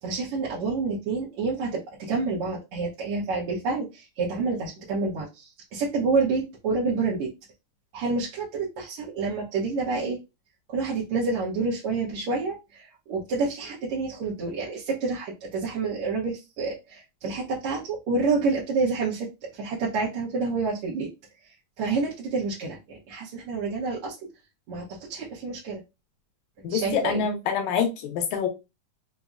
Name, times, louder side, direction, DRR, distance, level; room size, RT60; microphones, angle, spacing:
voice 1, 0.0-7.3 7.9-10.2 10.7-19.3 19.5-21.1 21.8-24.1 24.7-25.8 26.6-27.2, right 4 dB, 65° right, -5 dB, 1.5 m, -28 dB
voice 2, 26.6-28.5, left 7 dB, 80° left, 4 dB, 2.1 m, -26 dB
5.3 x 2.0 x 2.4 m, 0.25 s
omnidirectional pair, 3.4 m